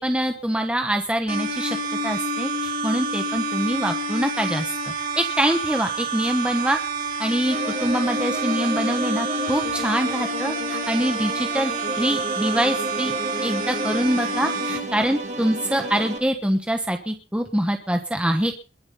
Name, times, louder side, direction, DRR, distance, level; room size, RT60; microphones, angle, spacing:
voice 1, 0.0-1.8 2.0-4.6 5.2-6.8 7.2-13.1 13.4-18.5, right 1 dB, 5° right, 5 dB, 1.2 m, -24 dB
sound 1, 1.3-14.8, right 2 dB, 60° right, 7.2 m, -28 dB
sound 2, 7.5-16.2, right 1 dB, 40° right, 2.7 m, -31 dB
22.0 x 7.4 x 5.6 m, 0.37 s
head